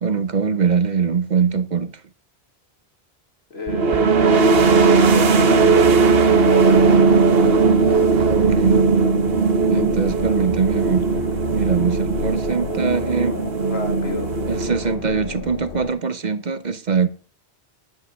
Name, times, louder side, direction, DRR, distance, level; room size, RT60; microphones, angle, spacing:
voice 1, 0.0-1.9 8.3-8.8 9.7-11.1 11.5-13.4 14.5-17.1, right 6 dB, 50° right, 0.9 m, -22 dB
voice 2, 3.5-4.1 4.8-7.2 13.7-14.3, left 3 dB, 85° left, 2.4 m, -33 dB
sound 1, 3.7-15.2, right 4 dB, 70° right, 1.2 m, -17 dB
sound 2, 3.8-15.9, left 5 dB, 60° left, 1.1 m, -33 dB
11.5 x 5.4 x 7.4 m
omnidirectional pair, 1.0 m